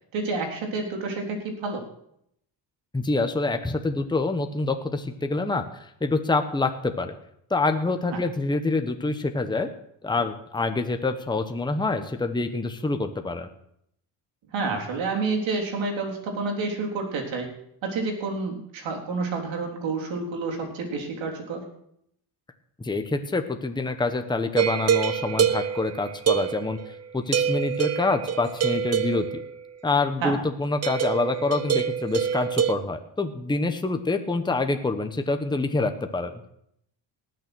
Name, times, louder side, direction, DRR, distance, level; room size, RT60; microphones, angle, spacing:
voice 1, 0.1-1.8 8.1-8.2 14.5-17.5 17.8-21.6 30.2-30.4, right 3 dB, 70° right, 1 dB, 3.8 m, -29 dB
voice 2, 2.9-7.1 7.5-9.7 10.0-13.5 22.8-26.8 27.1-29.4 29.8-36.3, left 3 dB, 10° left, 6 dB, 1.1 m, -26 dB
sound 1, 24.6-27.0 27.3-29.6 30.8-32.7, right 8 dB, 30° right, 0.8 m, -26 dB
18.5 x 6.8 x 6.2 m, 0.73 s
cardioid pair, 100°, 47 cm